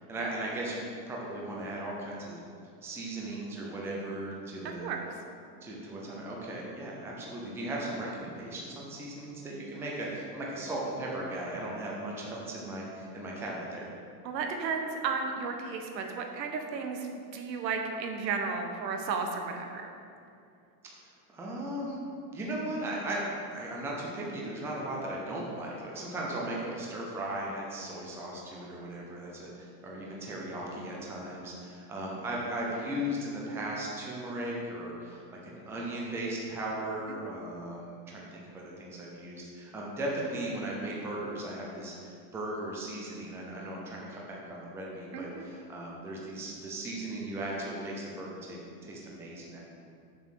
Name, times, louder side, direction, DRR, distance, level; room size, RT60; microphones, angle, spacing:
voice 1, 0.1-2.4 2.8-4.9 5.6-13.9 21.3-22.0 22.3-23.2 23.5-49.6, right 1 dB, 5° right, -3 dB, 0.6 m, -37 dB
voice 2, 14.2-17.1 17.3-19.9 45.1-45.5, right 5 dB, 85° right, 4 dB, 1.4 m, -33 dB
7.0 x 6.3 x 6.5 m, 2.4 s
supercardioid pair, 165°, 49 cm